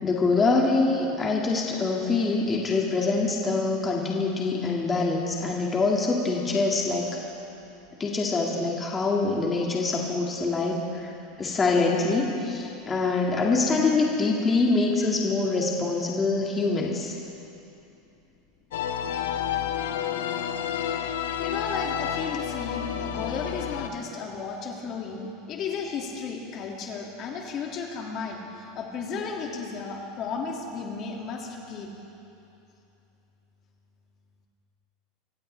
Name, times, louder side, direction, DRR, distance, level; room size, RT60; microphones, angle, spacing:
voice 1, 0.0-7.1 8.0-11.1 11.4-17.1, left 3 dB, 20° left, -1 dB, 2.0 m, -25 dB
sound 1, 18.7-23.9, left 9 dB, 85° left, 0.9 m, -30 dB
voice 2, 21.4-31.9, left 5 dB, 45° left, 0 dB, 2.2 m, -34 dB
25.0 x 14.5 x 3.3 m, 2.8 s
supercardioid pair, 115°, 0 cm